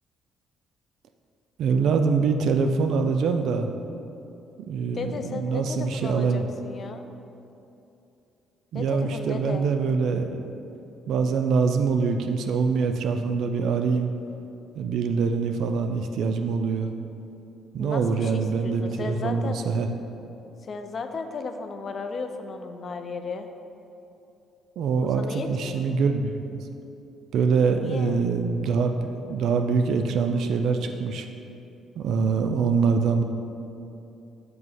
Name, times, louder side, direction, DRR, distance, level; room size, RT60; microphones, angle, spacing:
voice 1, 1.6-3.7 4.7-6.5 8.7-10.5 11.1-14.1 14.8-16.9 17.7-19.9 24.8-26.7 27.3-31.3 32.0-33.2, right 5 dB, 70° right, 6 dB, 0.3 m, -24 dB
voice 2, 4.9-7.1 8.7-9.7 17.8-19.6 20.6-23.5 25.0-25.9 27.8-28.2, left 4 dB, 40° left, 7 dB, 0.4 m, -35 dB
7.6 x 2.9 x 5.5 m, 2.8 s
cardioid pair, 115°, 0 cm